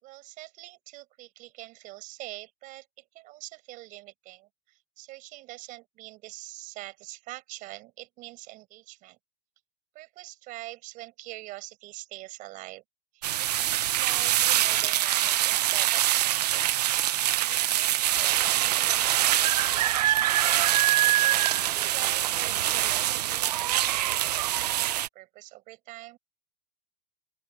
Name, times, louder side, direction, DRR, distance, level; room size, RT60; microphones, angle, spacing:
voice 1, 0.0-2.9 3.1-9.2 9.9-12.8 13.1-16.6 17.4-20.6 21.2-26.2, right 19 dB, 40° right, 6.1 m, -44 dB
sound 1, 13.2-25.1, right 13 dB, 85° right, 0.9 m, -24 dB
open air
supercardioid pair, 130°, 20 cm